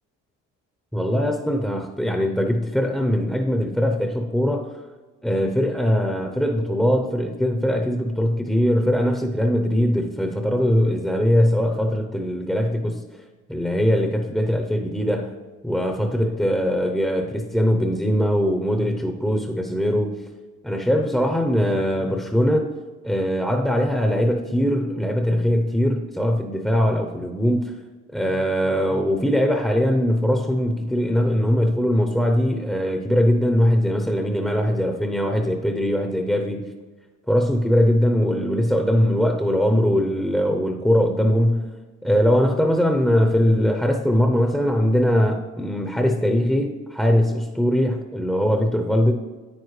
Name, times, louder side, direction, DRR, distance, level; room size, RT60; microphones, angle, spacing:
voice 1, 0.9-4.7 5.2-13.0 13.5-15.3 15.6-20.1 20.6-22.7 23.0-27.7 28.1-36.7 37.3-41.7 42.0-49.1, equal, ahead, 3 dB, 0.7 m, -21 dB
9.6 x 9.2 x 3.2 m, 1.4 s
cardioid pair, 90°, 30 cm